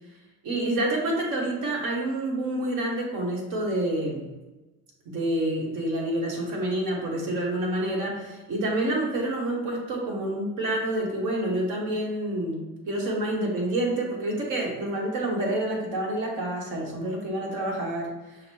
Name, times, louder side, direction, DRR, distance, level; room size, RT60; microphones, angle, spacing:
voice 1, 0.4-4.3 5.0-12.6 12.9-18.4, right 1 dB, 70° right, -1 dB, 1.3 m, -28 dB
6.3 x 2.1 x 3.1 m, 1.1 s
supercardioid pair, 95°, 33 cm